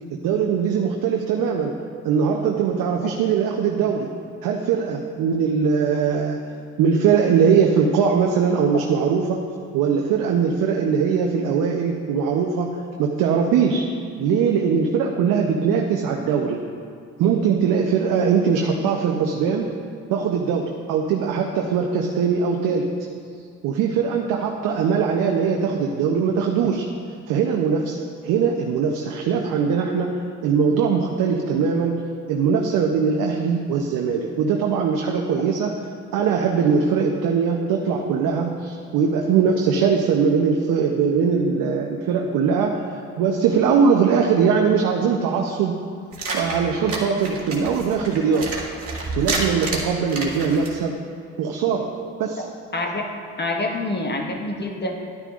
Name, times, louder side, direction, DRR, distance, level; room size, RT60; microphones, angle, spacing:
voice 1, 0.1-1.7 2.0-4.1 4.4-6.4 6.8-9.4 9.7-13.9 14.2-16.6 17.2-19.7 20.1-22.9 23.6-26.8 27.3-32.0 32.3-35.8 36.1-45.8 46.3-48.6 49.2-50.9 51.4-51.9 52.2-52.4, right 6 dB, 70° right, 1 dB, 0.8 m, -21 dB
sound 1, 46.1-50.8, right 2 dB, 45° right, 2.1 m, -29 dB
voice 2, 52.7-53.0 53.4-54.9, left 2 dB, 30° left, 2 dB, 1.4 m, -26 dB
11.0 x 9.9 x 2.5 m, 2.2 s
supercardioid pair, 60°, 33 cm